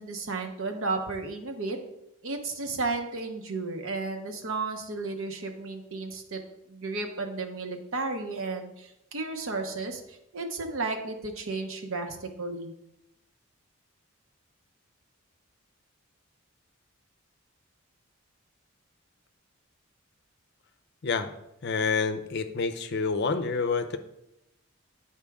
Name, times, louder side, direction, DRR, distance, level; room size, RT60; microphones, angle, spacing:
voice 1, 0.0-1.8 2.2-6.4 6.7-12.7, right 3 dB, 75° right, 4 dB, 1.0 m, -33 dB
voice 2, 21.0-21.3 21.6-24.0, left 4 dB, 50° left, 9 dB, 0.5 m, -28 dB
9.7 x 4.5 x 3.5 m, 0.86 s
head